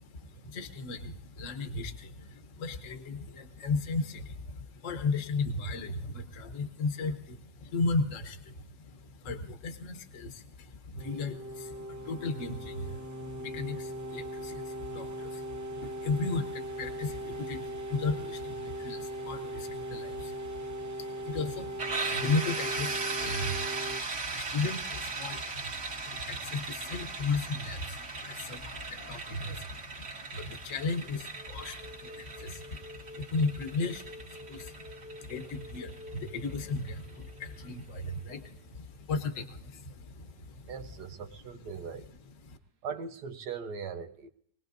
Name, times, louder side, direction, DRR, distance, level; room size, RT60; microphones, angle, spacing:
voice 1, 0.0-40.7 42.5-42.6, left 3 dB, 55° left, 1.5 m, -36 dB
sound 1, 10.9-24.0, right 1 dB, 15° right, 0.6 m, -39 dB
sound 2, 21.8-37.4, right 4 dB, 50° right, 2.0 m, -38 dB
sound 3, 28.8-29.4 31.0-38.7, left 2 dB, 30° left, 0.9 m, -51 dB
voice 2, 40.7-42.1 42.8-44.3, right 6 dB, 80° right, 1.6 m, -40 dB
24.0 x 19.0 x 2.6 m
omnidirectional pair, 1.7 m